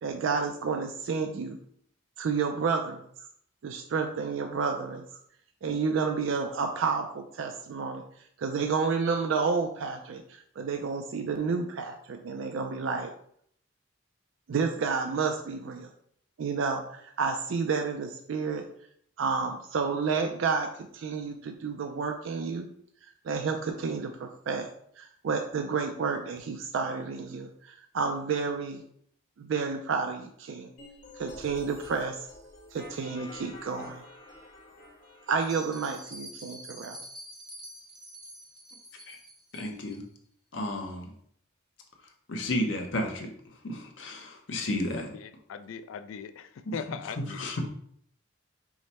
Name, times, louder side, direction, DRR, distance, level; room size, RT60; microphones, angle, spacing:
voice 1, 0.0-1.6 2.2-3.0 3.6-5.0 5.6-8.0 8.4-13.1 14.5-15.9 16.4-18.6 19.2-20.7 20.9-22.7 23.0-24.7 25.0-28.8 29.4-30.7 31.2-32.3 32.7-34.0 35.3-37.0, right 5 dB, 70° right, 0.4 m, -30 dB
sound 1, 30.8-35.8, left 2 dB, 45° left, 1.1 m, -48 dB
Bell, 35.3-40.0, right 1 dB, 5° right, 0.5 m, -46 dB
voice 2, 39.5-40.0 40.5-41.1 42.3-43.3 43.6-45.1 46.7-46.8 47.2-47.6, left 1 dB, 65° left, 0.7 m, -32 dB
voice 3, 45.1-47.5, left 6 dB, 80° left, 0.3 m, -40 dB
4.8 x 2.1 x 4.1 m
head